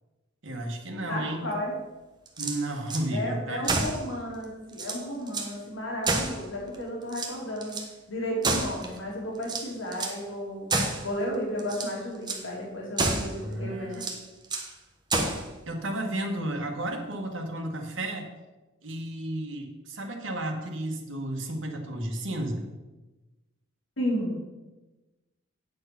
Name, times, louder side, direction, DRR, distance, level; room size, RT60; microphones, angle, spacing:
voice 1, 0.4-1.5 2.4-3.9 13.3-14.1 15.3-18.3 18.8-22.7, right 1 dB, 75° right, 2 dB, 1.6 m, -33 dB
voice 2, 1.1-1.7 3.1-7.8 8.1-10.7 11.0-14.1 24.0-24.3, equal, 80° left, -2 dB, 2.6 m, -33 dB
sound 1, 2.3-3.1 3.6-4.0 4.4-4.5 4.7-5.5 6.0-6.8 7.1-7.9 8.4-9.0 9.4-10.2 10.7-11.1 11.6-11.9 12.3-12.5 13.0-13.4 13.9-14.7 15.1-15.5, right 3 dB, 20° right, 1.1 m, -29 dB
9.1 x 6.5 x 5.9 m, 1.1 s
head